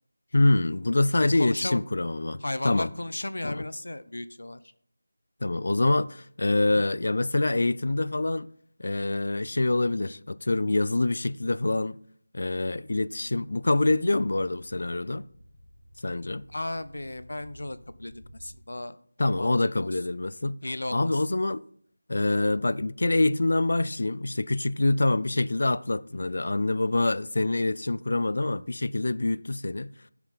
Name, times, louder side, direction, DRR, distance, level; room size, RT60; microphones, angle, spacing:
voice 1, 0.3-2.9 3.4-3.7 5.4-8.5 8.8-12.0 12.3-15.2 16.0-16.5 19.2-20.6 20.9-21.6 22.1-29.9, left 2 dB, 45° left, 0.4 m, -25 dB
voice 2, 1.2-1.8 2.4-4.6 6.7-6.8 16.5-19.0 19.4-19.5 19.8-19.9 20.6-21.2, left 1 dB, 80° left, 0.7 m, -35 dB
sound 1, 12.7-18.6, equal, 20° left, 2.7 m, -53 dB
13.0 x 7.2 x 4.1 m
figure-of-eight pair, 180°, 0 cm